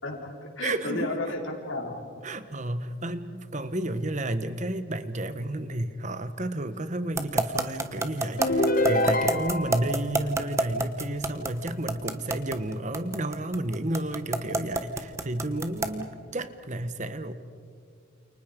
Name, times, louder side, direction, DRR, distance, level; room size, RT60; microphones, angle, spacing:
voice 1, 0.0-2.0, left 2 dB, 70° left, 1 dB, 4.4 m, -33 dB
voice 2, 0.6-1.1 2.2-17.3, right 1 dB, 35° right, 12 dB, 1.1 m, -31 dB
sound 1, 7.2-16.0, right 2 dB, 15° right, 1.2 m, -27 dB
sound 2, 8.4-9.9, left 1 dB, 40° left, 1.4 m, -25 dB
29.5 x 28.5 x 5.2 m, 2.3 s
head